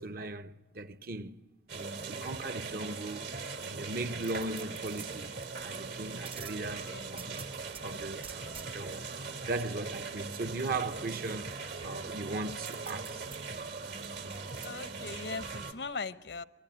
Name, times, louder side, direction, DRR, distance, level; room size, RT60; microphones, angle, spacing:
voice 1, 0.0-1.4 1.7-3.3 3.6-5.3 5.6-7.4 7.8-9.0 9.5-13.3, right 2 dB, 60° right, 1.0 m, -38 dB
sound 1, 1.7-15.7, right 4 dB, 75° right, 2.7 m, -40 dB
sound 2, 4.2-5.8 6.3-7.8 8.2-9.1 12.6-14.7 15.1-15.2, right 7 dB, 35° right, 0.9 m, -48 dB
voice 2, 6.6-7.1 14.6-16.4, left 4 dB, 75° left, 0.9 m, -40 dB
27.0 x 23.0 x 9.0 m
head